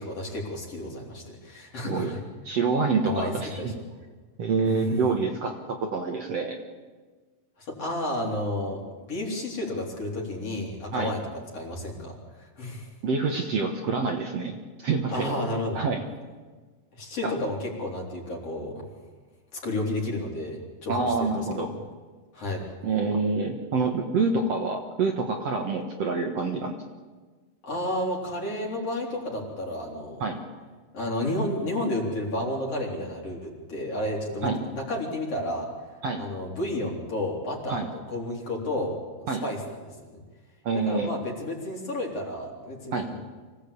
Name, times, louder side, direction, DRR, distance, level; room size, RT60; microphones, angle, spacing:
voice 1, 0.0-2.2 3.0-3.8 4.6-5.0 7.6-11.2 11.5-12.9 15.1-15.8 16.9-18.8 19.5-21.4 21.7-21.8 22.3-22.6 27.6-30.2 30.9-35.7 36.2-39.0 39.2-40.2 40.7-43.0, left 1 dB, 45° left, -1 dB, 4.7 m, -31 dB
voice 2, 2.4-3.7 4.4-6.6 10.9-11.1 13.0-15.3 15.7-16.0 17.2-17.3 20.9-21.7 22.8-26.8 30.2-30.4 34.4-34.6 36.0-36.2 37.7-37.9 39.3-39.4 40.6-41.1 42.9-43.1, right 4 dB, 55° right, 2 dB, 2.1 m, -27 dB
25.0 x 17.0 x 8.5 m, 1.4 s
omnidirectional pair, 4.1 m